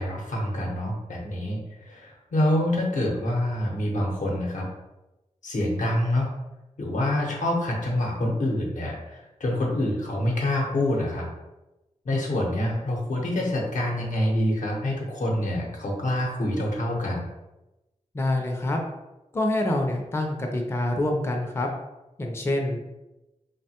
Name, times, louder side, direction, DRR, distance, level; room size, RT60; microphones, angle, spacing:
voice 1, 0.0-4.7 5.4-6.3 6.8-11.3 12.0-17.3, left 1 dB, 85° left, -2 dB, 0.7 m, -26 dB
voice 2, 18.1-18.8 19.3-21.7 22.2-22.9, left 1 dB, 20° left, 2 dB, 0.3 m, -26 dB
2.9 x 2.1 x 2.8 m, 1.0 s
wide cardioid pair, 95°, 13 cm